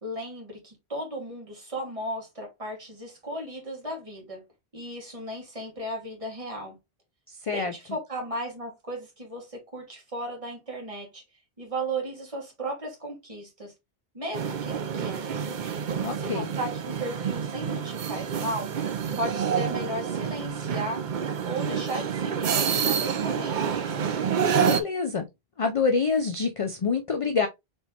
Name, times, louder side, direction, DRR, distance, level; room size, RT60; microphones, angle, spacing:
voice 1, 0.0-4.4 4.7-6.8 7.5-11.2 11.6-13.7 14.1-15.5 16.2-18.7 19.1-21.1 21.4-23.8, right 1 dB, 35° right, 1.9 m, -35 dB
voice 2, 7.4-7.7 16.0-16.5 24.6-25.3 25.6-27.5, left 5 dB, 45° left, 0.5 m, -26 dB
sound 1, 14.3-24.8, right 7 dB, 55° right, 0.7 m, -28 dB
4.4 x 3.3 x 2.8 m
omnidirectional pair, 1.0 m